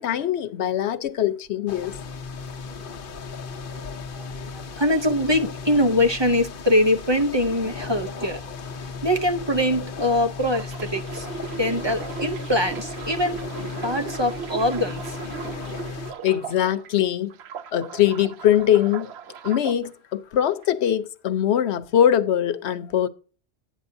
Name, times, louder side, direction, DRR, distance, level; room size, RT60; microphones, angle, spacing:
voice 1, 0.0-2.0 16.2-17.3 17.7-19.1 19.4-23.1, left 10 dB, 90° left, 1.0 m, -22 dB
sound 1, 1.7-16.1, left 4 dB, 55° left, 1.0 m, -36 dB
voice 2, 4.1-11.3 11.5-15.4, left 1 dB, 30° right, 0.7 m, -23 dB
sound 2, 10.4-16.9 17.3-19.8 20.4-20.7, right 6 dB, 75° right, 0.9 m, -37 dB
11.5 x 9.3 x 2.6 m
omnidirectional pair, 1.1 m